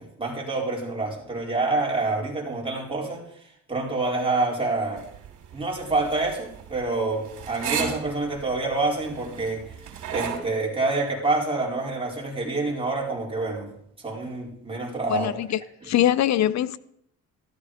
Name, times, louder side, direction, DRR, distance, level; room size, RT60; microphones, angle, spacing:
voice 1, 0.0-3.2 3.7-5.0 5.5-9.7 10.1-13.7 14.0-15.4, right 3 dB, 20° right, 4.6 m, -27 dB
sound 1, 5.0-10.4, right 7 dB, 80° right, 3.0 m, -34 dB
voice 2, 15.1-16.8, left 12 dB, 65° left, 0.7 m, -23 dB
13.0 x 12.5 x 5.0 m
cardioid pair, 90°, 30 cm